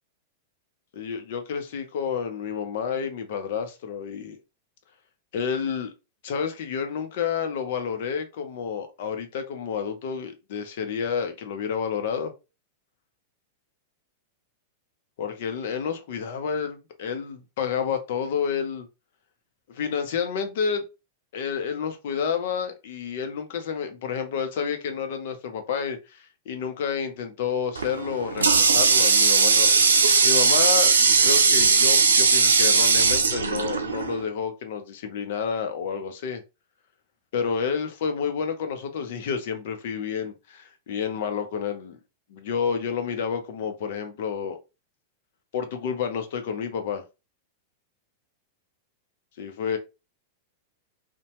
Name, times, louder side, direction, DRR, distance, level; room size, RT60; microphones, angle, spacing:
voice 1, 0.9-4.4 5.3-5.9 6.2-12.3 15.2-18.9 19.7-20.9 21.3-29.7 30.2-36.4 37.3-42.0 42.3-44.6 45.5-47.0 49.4-49.8, left 6 dB, 65° left, 0.6 m, -30 dB
Water tap faucet, 27.8-34.2, right 4 dB, 85° right, 0.4 m, -19 dB
2.8 x 2.2 x 2.9 m
hypercardioid pair, 100°, 0 cm